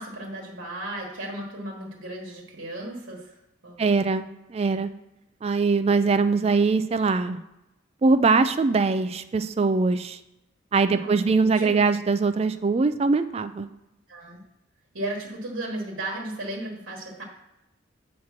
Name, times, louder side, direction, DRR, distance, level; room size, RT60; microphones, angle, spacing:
voice 1, 0.0-3.3 3.6-3.9 10.9-11.8 14.1-14.4 14.9-17.2, right 1 dB, 80° right, -2 dB, 1.3 m, -35 dB
voice 2, 3.8-4.2 4.5-4.9 5.4-7.4 8.0-10.2 10.7-13.7, right 4 dB, 30° right, 10 dB, 0.3 m, -22 dB
7.3 x 3.1 x 5.8 m, 0.91 s
head